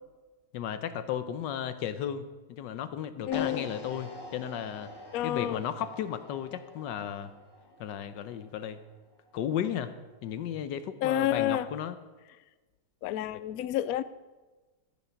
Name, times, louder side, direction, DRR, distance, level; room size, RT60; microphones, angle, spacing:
voice 1, 0.5-4.9 5.2-7.3 7.8-8.8 9.3-9.9 10.2-12.0, left 9 dB, 70° left, 11 dB, 1.3 m, -34 dB
voice 2, 3.3-3.7 5.1-5.6 11.0-11.7 13.0-14.0, left 12 dB, 85° left, 15 dB, 0.7 m, -29 dB
sound 1, 3.3-9.5, left 2 dB, 15° left, 0.9 m, -46 dB
14.0 x 7.2 x 5.7 m, 1.2 s
omnidirectional pair, 2.2 m